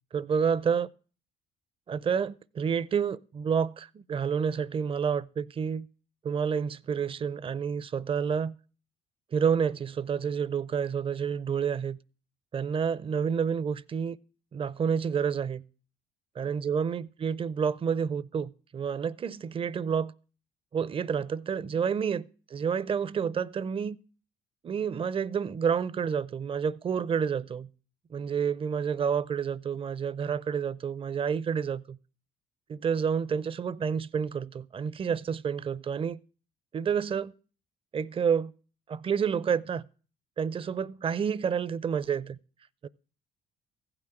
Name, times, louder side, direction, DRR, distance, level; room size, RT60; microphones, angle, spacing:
voice 1, 0.1-0.9 1.9-5.9 6.2-8.5 9.3-12.0 12.5-14.2 14.5-15.6 16.4-20.1 20.7-24.0 24.6-27.7 28.1-32.0 32.7-36.2 36.7-37.3 37.9-38.5 38.9-39.9 40.4-42.4 42.8-42.9, right 7 dB, 30° right, 0.5 m, -29 dB
15.5 x 6.0 x 7.7 m
cardioid pair, 110°, 17 cm